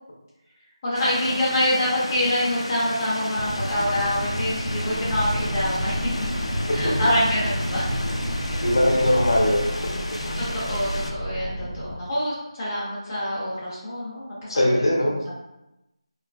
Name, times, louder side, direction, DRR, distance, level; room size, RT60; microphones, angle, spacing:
voice 1, 0.8-7.9 10.4-15.3, left 1 dB, 15° left, -10 dB, 0.4 m, -26 dB
sound 1, 0.9-11.1, left 1 dB, 90° left, 0.4 m, -34 dB
sound 2, 3.4-9.4, equal, 90° right, 0.9 m, -30 dB
sound 3, 4.8-11.9, equal, 55° right, 0.6 m, -33 dB
voice 2, 8.6-9.9 14.5-15.2, left 1 dB, 55° left, -2 dB, 0.6 m, -21 dB
2.6 x 2.3 x 2.2 m, 0.92 s
figure-of-eight pair, 170°, 3 cm